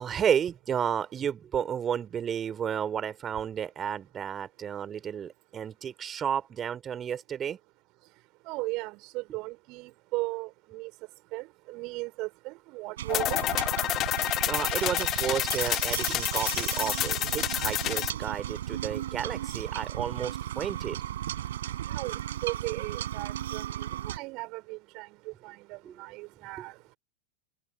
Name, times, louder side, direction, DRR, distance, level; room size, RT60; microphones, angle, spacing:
voice 1, 0.0-7.6 14.5-21.0 25.8-26.0 26.6-26.7, right 8 dB, 25° right, 3.2 m, -32 dB
voice 2, 8.5-10.9 11.3-13.4 21.9-22.1 22.4-23.6 24.1-25.1 25.4-25.5 26.0-26.7, right 24 dB, 40° right, 3.6 m, -36 dB
sound 1, 13.0-24.2, right 12 dB, 60° right, 7.5 m, -35 dB
sound 2, 13.1-18.1, left 13 dB, 30° left, 1.6 m, -29 dB
figure-of-eight pair, 90°, 0 cm